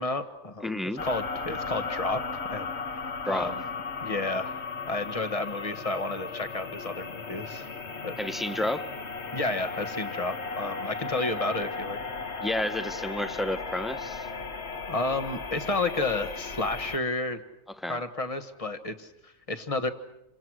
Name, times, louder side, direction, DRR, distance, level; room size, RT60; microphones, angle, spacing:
voice 1, 0.0-2.2 2.5-2.7 3.3-3.6 4.0-7.7 8.0-8.1 9.3-12.0 14.9-17.4 17.9-19.9, left 2 dB, 25° left, 1.5 m, -31 dB
voice 2, 0.6-1.1 3.2-3.5 8.2-8.9 12.4-14.3 17.7-18.0, left 1 dB, ahead, 0.7 m, -31 dB
sound 1, 1.0-17.0, left 4 dB, 50° left, 1.7 m, -36 dB
28.5 x 26.0 x 6.3 m
omnidirectional pair, 1.4 m